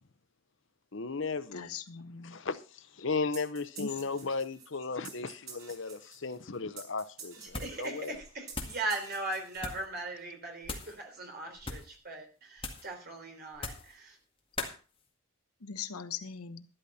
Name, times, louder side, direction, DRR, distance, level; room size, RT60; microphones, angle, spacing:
voice 1, 0.9-1.7 2.2-8.2, left 4 dB, 55° left, 0.8 m, -35 dB
voice 2, 1.5-2.4 3.8-3.9 15.6-16.7, left 6 dB, 90° left, 1.1 m, -40 dB
sound 1, 3.3-10.0, right 5 dB, 70° right, 4.1 m, -50 dB
voice 3, 7.4-14.2, right 2 dB, 45° right, 3.6 m, -39 dB
sound 2, 7.5-7.9 8.1-8.8 9.5-9.9 10.6-11.0 11.6-11.9 12.6-12.9 13.5-13.9 14.6-14.8, left 3 dB, 25° left, 1.9 m, -40 dB
12.0 x 12.0 x 4.2 m
head